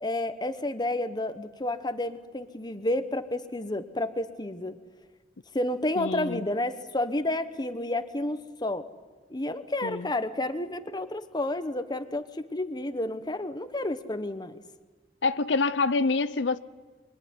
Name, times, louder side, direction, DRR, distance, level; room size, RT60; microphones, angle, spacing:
voice 1, 0.0-4.8 5.5-8.9 9.3-14.6, left 1 dB, 25° left, 1.2 m, -30 dB
voice 2, 6.0-6.4 9.8-10.1 15.2-16.6, left 3 dB, 85° left, 0.7 m, -26 dB
24.0 x 23.5 x 9.6 m
head